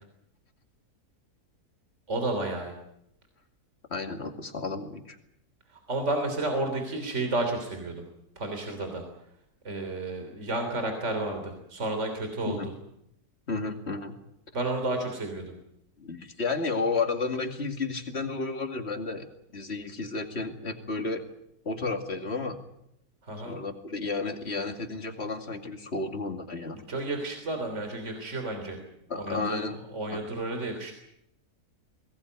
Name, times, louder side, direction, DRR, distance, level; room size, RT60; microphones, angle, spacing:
voice 1, 2.1-2.7 5.7-8.0 8.4-9.0 9.6-12.7 14.5-15.5 23.2-23.6 26.7-28.8 29.2-29.6 29.9-30.9, right 2 dB, 50° right, 5 dB, 3.6 m, -31 dB
voice 2, 3.9-5.2 12.5-12.7 13.5-14.1 16.0-19.3 19.5-21.2 21.6-22.6 23.5-26.8 29.1-29.8 30.1-30.2, left 3 dB, 45° left, 5 dB, 2.6 m, -32 dB
21.5 x 18.5 x 9.5 m, 0.77 s
omnidirectional pair, 1.6 m